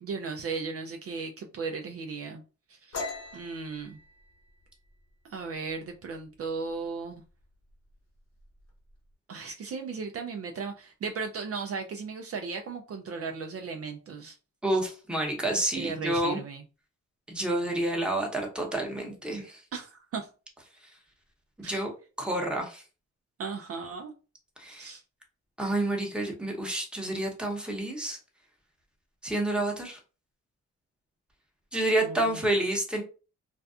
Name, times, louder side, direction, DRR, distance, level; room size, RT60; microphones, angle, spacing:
voice 1, 0.0-2.4 2.7-3.1 3.3-4.0 5.3-7.2 9.3-14.4 15.8-16.6 19.7-20.3 21.6-21.8 23.4-24.1 24.7-25.0 32.0-32.4, right 4 dB, 55° right, 4 dB, 0.4 m, -36 dB
sound 1, 2.9-6.4 6.7-7.0 7.4-7.9 8.2-9.0, left 3 dB, 60° left, 0.8 m, -41 dB
voice 2, 14.6-16.4 17.3-19.6 21.6-21.9 22.2-22.8 24.6-24.9 25.6-28.2 29.2-30.0 31.7-33.0, right 1 dB, 5° right, 0 dB, 0.8 m, -29 dB
2.5 x 2.2 x 2.3 m, 0.34 s
cardioid pair, 80°, 29 cm